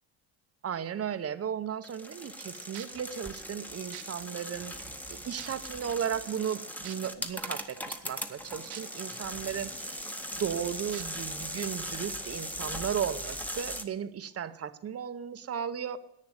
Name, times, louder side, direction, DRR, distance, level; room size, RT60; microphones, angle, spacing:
voice 1, 0.6-4.7 5.1-10.0 10.3-16.0, right 8 dB, 30° right, 13 dB, 0.7 m, -35 dB
sound 1, 1.8-13.8, equal, 5° left, 0.9 m, -39 dB
sound 2, 2.7-3.0 3.9-4.0 4.8-4.9 5.4-5.7 6.8-7.0 8.7-8.8 9.3-9.4 10.9-11.0 11.8-11.9, right 14 dB, 85° right, 1.4 m, -43 dB
10.5 x 9.0 x 9.1 m, 0.82 s
cardioid pair, 135°, 50 cm